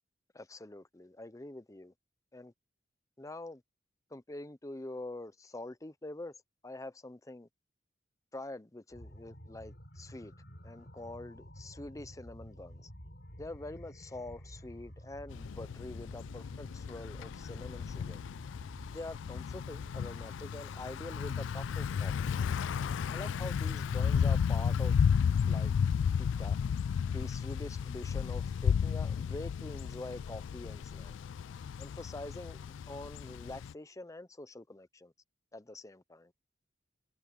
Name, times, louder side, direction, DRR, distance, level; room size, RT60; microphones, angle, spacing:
voice 1, 0.3-1.9 2.3-2.5 3.2-3.6 4.1-6.4 6.6-7.5 8.3-10.3 10.6-12.9 13.4-18.2 18.9-22.3 23.1-25.0 25.5-25.7 26.2-26.6 27.1-31.2 31.8-35.1 35.5-36.3, left 2 dB, 20° left, 0.7 m, -45 dB
sound 1, 8.9-23.9, equal, 60° left, 7.5 m, -50 dB
Thunder / Bicycle, 15.3-33.7, left 7 dB, 85° left, 0.3 m, -33 dB
head